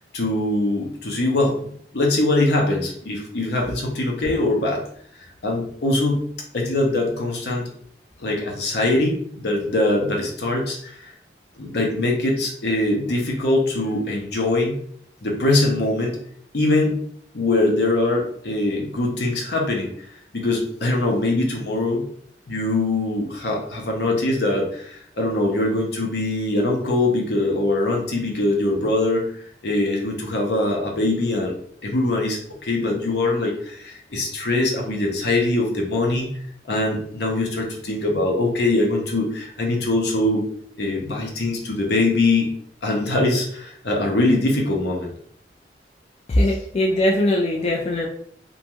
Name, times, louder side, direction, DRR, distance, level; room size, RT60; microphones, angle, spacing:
voice 1, 0.0-1.6 1.9-4.8 5.4-6.2 6.5-7.7 8.2-11.1 11.6-14.7 15.2-16.2 16.5-17.0 17.3-19.9 20.3-22.0 22.5-29.3 29.6-31.6 31.8-36.3 36.7-40.5 40.8-42.5 42.8-45.1 46.5-46.6, left 2 dB, 70° left, 0 dB, 0.7 m, -22 dB
voice 2, 46.3-48.1, left 1 dB, 35° left, -2 dB, 0.3 m, -20 dB
2.5 x 2.2 x 2.9 m, 0.63 s
head